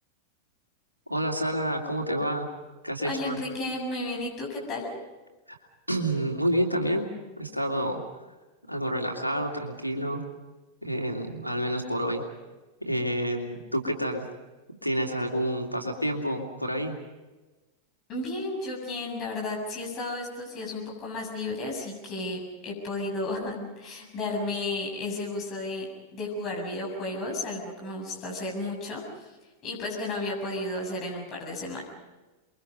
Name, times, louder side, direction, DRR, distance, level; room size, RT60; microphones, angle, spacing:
voice 1, 1.1-2.5 2.8-3.4 5.5-5.6 5.9-7.1 7.4-8.0 8.7-10.2 10.8-12.2 12.8-14.3 14.8-16.9, equal, 90° right, 1 dB, 2.8 m, -29 dB
voice 2, 3.0-4.9 18.1-29.3 29.6-31.8, left 2 dB, 35° left, -1 dB, 7.4 m, -33 dB
29.5 x 23.0 x 5.4 m, 1.2 s
figure-of-eight pair, 90°, 0 cm